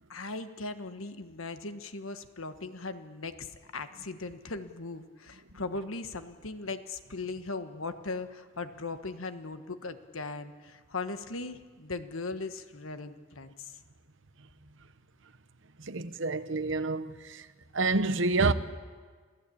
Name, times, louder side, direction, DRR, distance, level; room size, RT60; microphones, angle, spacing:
voice 1, 0.1-13.8, left 3 dB, 75° left, 1.4 m, -39 dB
voice 2, 15.8-17.5 17.7-18.5, right 3 dB, 60° right, 1.0 m, -28 dB
27.5 x 16.5 x 8.6 m
head